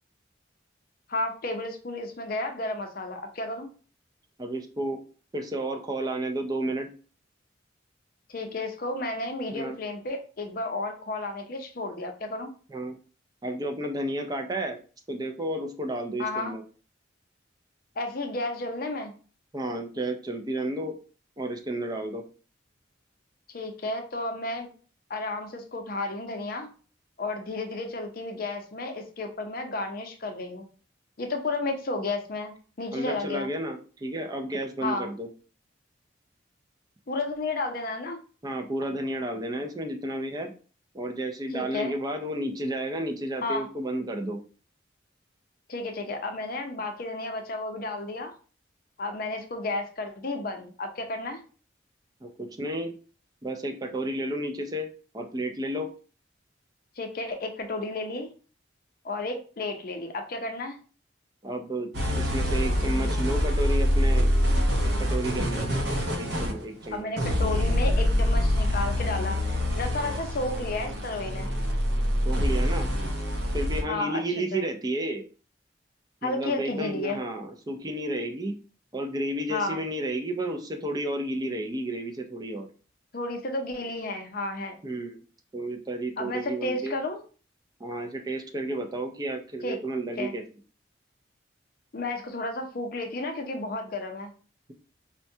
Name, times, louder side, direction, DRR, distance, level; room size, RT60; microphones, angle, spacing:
voice 1, 1.1-3.7 8.3-12.5 16.2-16.5 18.0-19.1 23.5-24.7 25.1-26.7 27.2-30.7 31.2-33.5 34.8-35.1 37.1-38.2 41.5-41.9 43.4-43.7 45.7-48.3 49.0-51.4 57.0-58.3 59.0-60.8 66.9-71.5 73.9-74.2 74.5-74.6 76.2-77.2 79.5-79.8 83.1-84.8 86.2-87.2 89.6-89.8 90.2-90.3 91.9-94.3, left 2 dB, 50° left, 4 dB, 0.6 m, -32 dB
voice 2, 4.4-5.0 5.3-6.9 9.5-9.8 12.7-13.0 13.4-14.8 15.1-16.6 19.5-21.0 21.4-22.2 32.9-35.3 38.4-40.5 40.9-44.4 52.2-52.9 53.4-54.9 55.1-55.9 61.4-61.9 62.2-64.3 65.0-65.7 66.2-67.1 72.3-72.9 73.5-75.2 76.2-78.5 78.9-82.7 84.8-85.2 85.5-87.0 87.8-90.4, right 1 dB, 20° right, 5 dB, 0.4 m, -32 dB
sound 1, 61.9-73.8, equal, 60° right, 0.7 m, -25 dB
4.3 x 2.2 x 2.7 m, 0.38 s
head